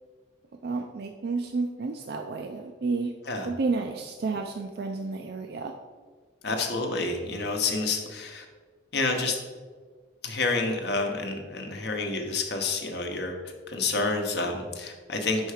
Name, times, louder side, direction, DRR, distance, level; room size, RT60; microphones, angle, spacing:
voice 1, 0.6-3.1 3.4-5.7, right 4 dB, 55° right, 4 dB, 0.4 m, -31 dB
voice 2, 6.4-8.4 8.9-9.4 10.2-13.3 13.7-15.5, left 3 dB, 60° left, 3 dB, 0.9 m, -29 dB
5.5 x 4.6 x 4.8 m, 1.5 s
head